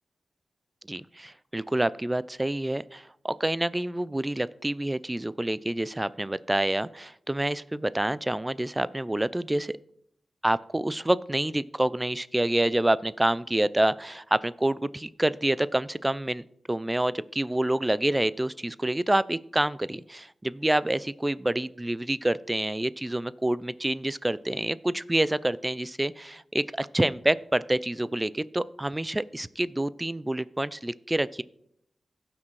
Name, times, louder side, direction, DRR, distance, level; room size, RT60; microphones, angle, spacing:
voice 1, 0.9-9.7 10.4-31.4, right 1 dB, 15° right, 17 dB, 0.4 m, -27 dB
17.0 x 6.0 x 3.2 m, 0.73 s
cardioid pair, 60°, 0 cm